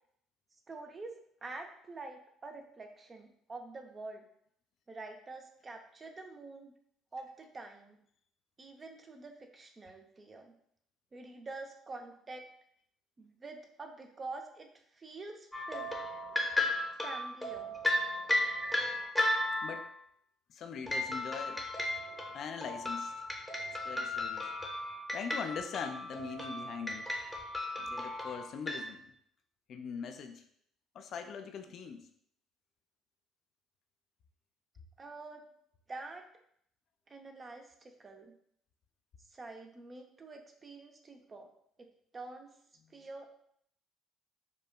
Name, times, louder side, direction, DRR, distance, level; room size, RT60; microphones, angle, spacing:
voice 1, 0.7-4.3 4.9-6.7 7.1-8.0 8.6-10.5 11.1-12.5 13.2-15.9 17.0-17.8 35.0-35.5 35.9-36.3 37.1-38.3 39.3-41.5 41.8-41.9 42.1-42.5 42.9-43.3, right 3 dB, 35° right, 4 dB, 0.5 m, -47 dB
sound 1, 15.5-19.9 20.9-28.8, left 1 dB, 5° left, 0.7 m, -35 dB
voice 2, 20.5-21.6 22.3-23.1 23.8-24.5 25.1-27.1 27.8-29.1 29.7-30.4 30.9-32.1 42.8-42.9, left 6 dB, 55° left, 6 dB, 0.3 m, -42 dB
4.4 x 2.2 x 2.2 m, 0.67 s
hypercardioid pair, 55°, 0 cm